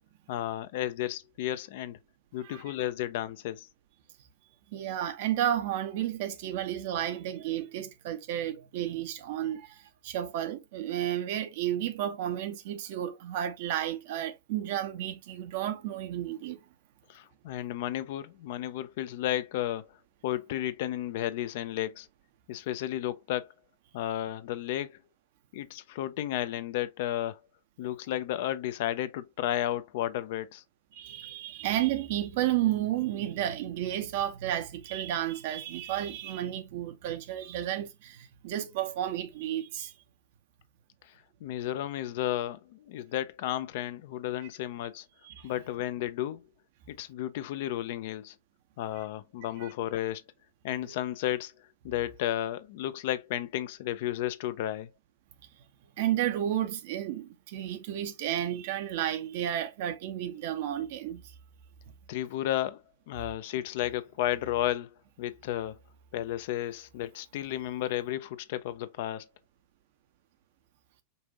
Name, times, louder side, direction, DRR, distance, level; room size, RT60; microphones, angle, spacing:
voice 1, 0.3-2.0 2.3-3.7 17.1-19.9 20.2-22.1 22.5-23.5 23.9-24.9 25.5-27.4 27.8-30.6 41.0-41.1 41.4-45.1 45.4-46.4 46.9-48.4 48.8-50.2 50.6-51.5 51.8-54.9 62.1-62.8 63.1-64.9 65.2-65.8 66.1-69.3, left 13 dB, 50° left, 0.5 m, -33 dB
voice 2, 4.7-16.6 30.9-39.9 45.2-45.5 49.6-49.7 56.0-61.2, right 12 dB, 50° right, 0.7 m, -32 dB
5.4 x 2.5 x 2.7 m
figure-of-eight pair, 90°, 0 cm